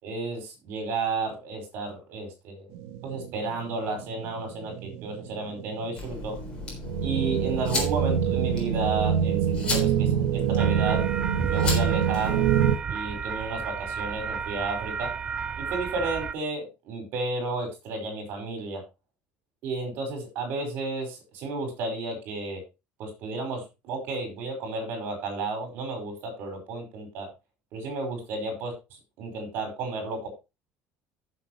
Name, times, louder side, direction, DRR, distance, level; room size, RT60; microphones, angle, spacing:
voice 1, 0.0-2.7 3.0-6.4 7.0-11.0 11.5-12.4 12.9-15.1 15.6-18.8 19.6-22.6 23.0-27.3 27.7-28.7 29.2-30.3, right 3 dB, 55° right, 4 dB, 5.3 m, -32 dB
sound 1, 2.7-12.7, right 9 dB, 85° right, 1.2 m, -26 dB
sound 2, 6.0-12.8, left 3 dB, 20° left, 3.8 m, -35 dB
sound 3, 10.6-16.3, right 6 dB, 20° right, 0.4 m, -32 dB
14.5 x 7.2 x 3.0 m, 0.26 s
cardioid pair, 175°, 4 cm